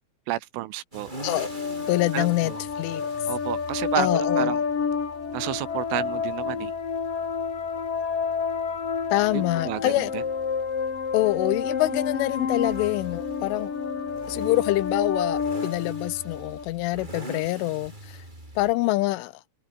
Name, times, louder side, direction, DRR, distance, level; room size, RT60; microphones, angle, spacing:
voice 1, 0.3-1.1 2.1-2.6 3.3-4.6 5.3-6.7 9.3-10.2, right 16 dB, 80° right, 3.7 m, -31 dB
sound 1, 0.9-18.7, right 1 dB, 10° right, 6.1 m, -44 dB
sound 2, 1.2-16.6, left 5 dB, 45° left, 5.7 m, -29 dB
voice 2, 1.9-3.1 4.0-4.6 9.1-10.1 11.1-13.7 14.3-18.2 18.6-19.3, left 18 dB, 85° left, 3.4 m, -25 dB
omnidirectional pair, 5.6 m